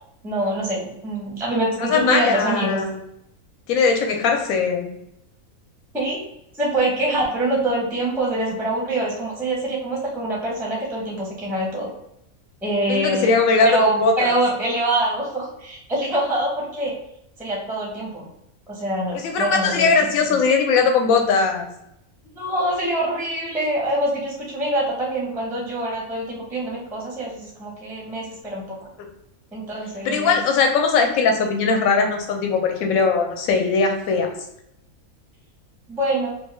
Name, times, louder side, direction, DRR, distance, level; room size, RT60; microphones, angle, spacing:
voice 1, 0.2-2.8 5.9-6.2 6.6-11.9 12.6-13.3 13.6-16.9 17.4-18.3 18.7-20.1 22.3-28.8 29.5-30.4 35.9-36.3, right 1 dB, 5° right, -4 dB, 0.4 m, -25 dB
voice 2, 1.9-3.0 3.7-4.9 12.9-14.3 19.1-21.7 30.0-34.3, left 4 dB, 75° left, 3 dB, 1.0 m, -20 dB
3.1 x 2.2 x 3.0 m, 0.81 s
omnidirectional pair, 1.5 m